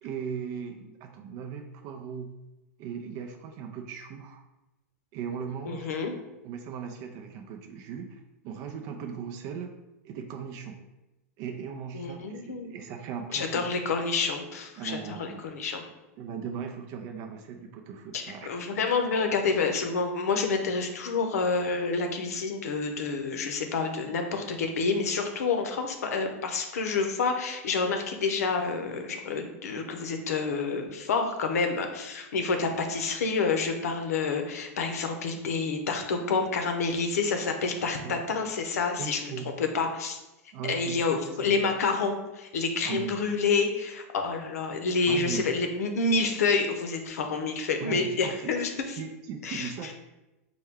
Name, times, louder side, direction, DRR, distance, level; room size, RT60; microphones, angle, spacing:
voice 1, 0.0-2.3 2.8-4.4 5.1-5.9 6.4-9.7 10.0-10.8 11.4-13.7 14.8-15.4 16.2-18.5 38.0-38.2 39.0-39.5 40.5-41.5 42.8-43.1 45.1-45.5 47.8-48.5 49.0-49.9, right 7 dB, 45° right, 4 dB, 0.4 m, -38 dB
voice 2, 5.6-6.1 11.9-12.8 13.3-15.8 18.1-39.3 39.6-40.2 40.6-49.0 49.4-49.7, left 4 dB, 85° left, 5 dB, 0.6 m, -28 dB
4.4 x 2.2 x 3.5 m, 1.0 s
hypercardioid pair, 125°, 8 cm